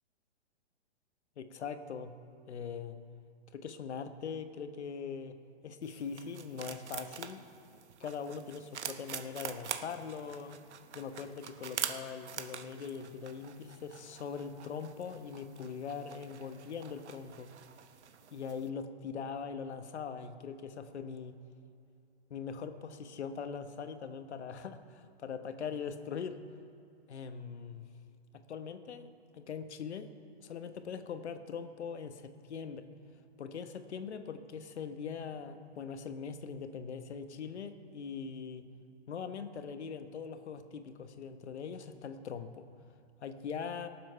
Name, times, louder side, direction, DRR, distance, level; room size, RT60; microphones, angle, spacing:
voice 1, 1.4-2.1 2.5-3.0 3.5-5.3 5.6-7.4 8.0-10.6 10.9-17.5 18.3-21.4 22.3-26.4 27.1-27.8 28.5-30.1 30.4-32.9 33.4-38.7 39.1-42.6 43.2-43.9, left 6 dB, 75° left, 8 dB, 1.2 m, -41 dB
sound 1, 5.8-18.7, right 8 dB, 80° right, 1.1 m, -45 dB
18.0 x 7.5 x 5.6 m, 2.5 s
hypercardioid pair, 165°, 34 cm